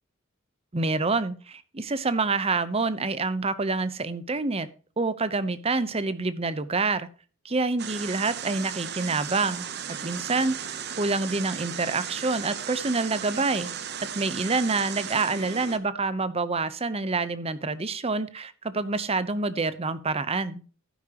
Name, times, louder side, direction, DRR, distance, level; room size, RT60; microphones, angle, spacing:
voice 1, 0.7-4.7 5.0-7.1 7.4-13.7 14.1-20.6, right 3 dB, 30° right, 14 dB, 0.8 m, -27 dB
sound 1, 7.8-15.8, right 8 dB, 55° right, 1.0 m, -36 dB
12.5 x 9.9 x 3.0 m, 0.38 s
head